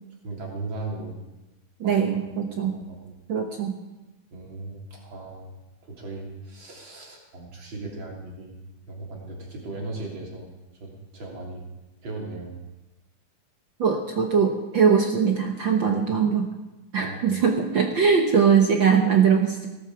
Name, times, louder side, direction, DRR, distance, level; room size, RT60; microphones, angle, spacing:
voice 1, 0.2-1.1 1.8-3.1 4.3-5.5 5.8-10.5 10.8-11.7 12.0-12.6 16.9-17.2, right 2 dB, 40° right, -1 dB, 3.7 m, -37 dB
voice 2, 1.8-2.7 3.3-3.7 13.8-16.5 16.9-19.7, right 6 dB, 65° right, 3 dB, 1.2 m, -21 dB
17.5 x 13.0 x 4.9 m, 1.1 s
omnidirectional pair, 3.6 m